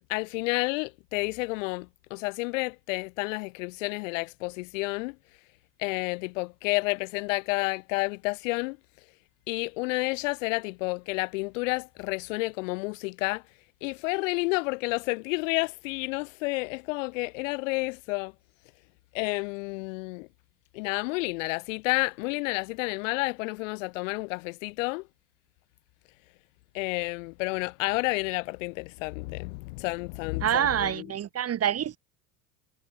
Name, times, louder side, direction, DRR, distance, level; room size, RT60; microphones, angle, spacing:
voice 1, 0.0-5.2 5.8-8.8 9.5-13.4 13.8-18.3 19.1-20.3 20.7-25.0 26.7-31.1, left 26 dB, 60° left, 2.6 m, -30 dB
voice 2, 30.4-32.0, right 10 dB, 35° right, 3.4 m, -26 dB
figure-of-eight pair, 75°, 43 cm